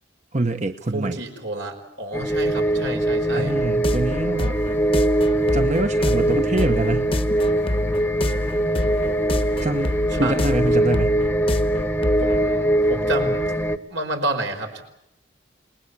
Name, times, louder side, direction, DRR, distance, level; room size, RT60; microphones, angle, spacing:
voice 1, 0.3-1.2 3.3-4.6 5.5-7.1 9.6-11.1, right 2 dB, 40° right, 7 dB, 1.0 m, -25 dB
voice 2, 0.9-3.5 10.1-10.4 12.2-14.8, right 2 dB, 80° right, 4 dB, 5.1 m, -30 dB
sound 1, 2.1-13.8, right 1 dB, 10° left, 1.1 m, -22 dB
sound 2, 3.6-12.4, left 1 dB, 30° left, 1.0 m, -28 dB
28.0 x 20.5 x 8.4 m, 0.78 s
head